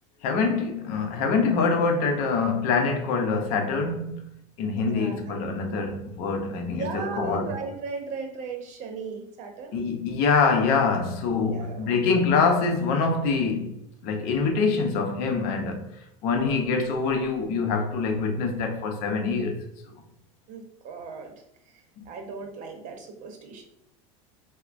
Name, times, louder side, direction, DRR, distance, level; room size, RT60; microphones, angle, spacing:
voice 1, 0.2-4.2 4.6-7.5 9.7-13.8 14.0-15.9 16.2-19.6, left 4 dB, 60° left, 0.7 m, -25 dB
voice 2, 4.7-5.4 6.7-9.9 11.3-12.0 20.5-21.3 21.7-23.6, right 4 dB, 50° right, 0.7 m, -37 dB
4.1 x 2.1 x 2.5 m
supercardioid pair, 115°, 16 cm